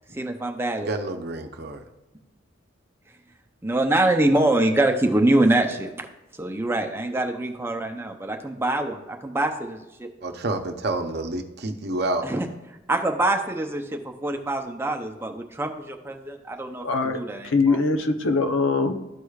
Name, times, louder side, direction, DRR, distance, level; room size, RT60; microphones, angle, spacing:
voice 1, 0.1-0.9 3.6-5.9 6.4-10.1 12.2-12.5 12.9-16.8 17.1-17.8, right 1 dB, 10° right, 4 dB, 0.6 m, -24 dB
voice 2, 0.8-1.8 10.2-12.3, right 2 dB, 50° right, 5 dB, 0.7 m, -28 dB
voice 3, 16.8-18.9, left 3 dB, 75° left, 7 dB, 0.7 m, -22 dB
12.5 x 4.8 x 2.4 m, 0.98 s
head